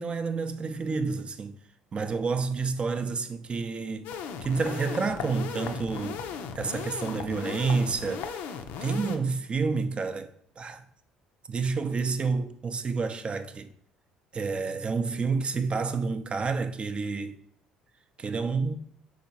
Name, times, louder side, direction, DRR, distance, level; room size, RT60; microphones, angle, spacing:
voice 1, 0.0-1.6 1.9-4.1 4.4-6.2 6.6-8.3 8.8-10.3 10.6-10.8 11.5-13.7 14.3-17.4 18.2-18.8, right 4 dB, 30° right, 0.5 m, -29 dB
sound 1, 4.0-9.2, left 6 dB, 65° left, 0.4 m, -36 dB
5.0 x 3.7 x 2.8 m
hypercardioid pair, 55°, 3 cm